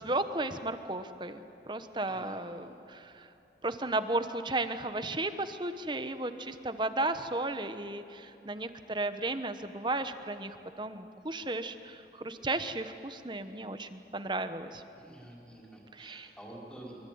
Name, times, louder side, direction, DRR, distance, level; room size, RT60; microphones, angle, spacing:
voice 1, 0.0-3.3 3.6-14.8 15.9-16.3, right 2 dB, 25° right, 10 dB, 1.1 m, -34 dB
voice 2, 2.1-2.4 14.9-17.0, right 1 dB, 5° left, -2 dB, 5.0 m, -49 dB
25.0 x 24.5 x 9.5 m, 2.9 s
head